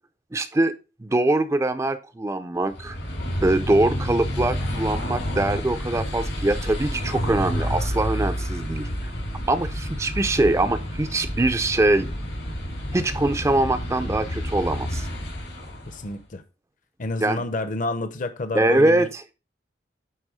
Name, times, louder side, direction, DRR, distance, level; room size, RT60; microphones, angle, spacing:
voice 1, 0.3-3.0 3.4-8.9 9.5-12.1 12.9-15.1 17.2-17.4 18.5-19.1, right 2 dB, 15° right, 10 dB, 0.4 m, -23 dB
sound 1, 2.6-16.1, equal, 80° left, 3.3 m, -29 dB
voice 2, 15.9-16.4 17.0-19.1, left 2 dB, 45° left, 10 dB, 0.7 m, -29 dB
9.0 x 3.5 x 4.8 m, 0.31 s
head